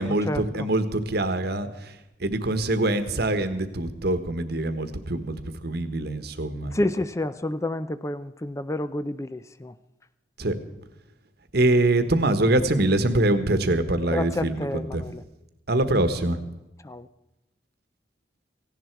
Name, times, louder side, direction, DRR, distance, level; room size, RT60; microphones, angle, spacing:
voice 1, 0.0-6.8 10.4-10.5 11.5-15.0 15.7-16.4, right 1 dB, 60° right, 10 dB, 1.3 m, -24 dB
voice 2, 6.7-9.7 14.1-15.2 16.8-17.1, left 1 dB, 15° left, 13 dB, 0.5 m, -29 dB
17.5 x 16.5 x 4.6 m, 0.94 s
head